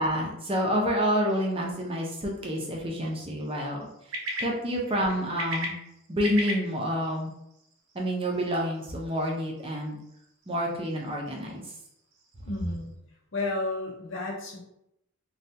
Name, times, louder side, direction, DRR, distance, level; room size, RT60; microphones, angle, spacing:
voice 1, 0.0-3.8 4.4-5.8 6.1-7.3 7.9-10.0 10.5-11.6, equal, 25° right, -1 dB, 0.6 m, -28 dB
sound 1, 1.3-12.9, equal, 80° right, 0.7 m, -41 dB
voice 2, 12.4-13.0 13.3-14.6, left 2 dB, 65° left, -3 dB, 0.8 m, -32 dB
3.3 x 2.3 x 2.7 m, 0.80 s
head